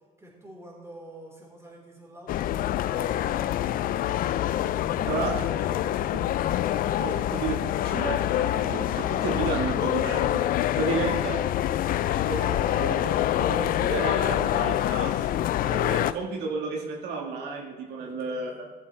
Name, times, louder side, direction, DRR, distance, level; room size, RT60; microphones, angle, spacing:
voice 1, 0.2-6.5 7.0-7.2 18.0-18.6, right 1 dB, 15° right, -4 dB, 3.9 m, -46 dB
sound 1, 2.3-16.1, left 12 dB, 60° left, 0.4 m, -26 dB
voice 2, 7.0-7.5 7.8-10.4 10.8-11.4 12.3-18.6, right 4 dB, 80° right, 0 dB, 1.6 m, -32 dB
16.0 x 7.5 x 3.3 m, 1.3 s
cardioid pair, 110°, 17 cm